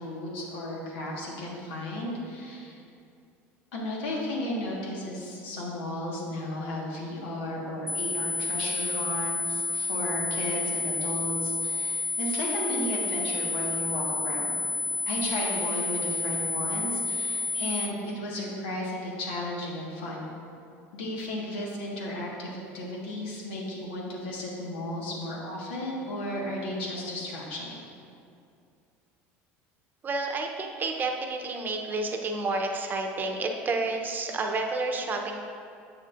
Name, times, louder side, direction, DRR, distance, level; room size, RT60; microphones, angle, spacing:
voice 1, 0.0-2.8 3.7-14.6 15.1-20.3 20.9-27.7, left 1 dB, 90° left, -3 dB, 1.5 m, -34 dB
sound 1, 7.9-17.9, left 3 dB, 5° left, 0.4 m, -30 dB
voice 2, 30.0-35.4, right 3 dB, 30° right, 3 dB, 0.8 m, -30 dB
8.3 x 6.6 x 2.5 m, 2.4 s
supercardioid pair, 100°, 6 cm